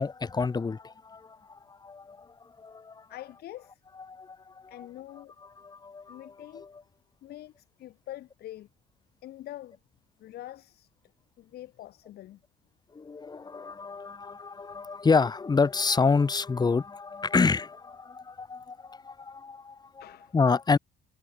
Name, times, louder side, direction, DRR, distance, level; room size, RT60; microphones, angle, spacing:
voice 1, 0.0-3.1 4.1-4.9 5.6-6.7 12.9-20.0 20.3-20.8, left 4 dB, 25° left, 1.9 m, -28 dB
voice 2, 3.1-3.8 4.7-5.3 6.1-6.7 7.2-8.7 9.2-9.8 10.2-10.9 11.4-12.4 20.0-20.3, left 14 dB, 70° left, 4.5 m, -44 dB
cardioid pair, 110°, 17 cm